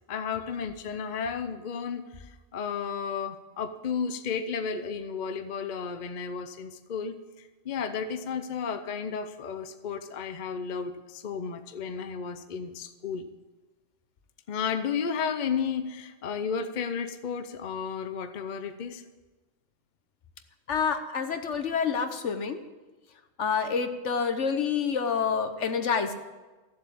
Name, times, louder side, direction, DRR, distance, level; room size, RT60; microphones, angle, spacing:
voice 1, 0.1-13.3 14.5-19.0, left 6 dB, 45° left, 9 dB, 0.8 m, -33 dB
voice 2, 20.7-22.6 23.4-26.1, left 6 dB, 70° left, 8 dB, 1.4 m, -28 dB
14.5 x 7.5 x 8.6 m, 1.2 s
omnidirectional pair, 1.3 m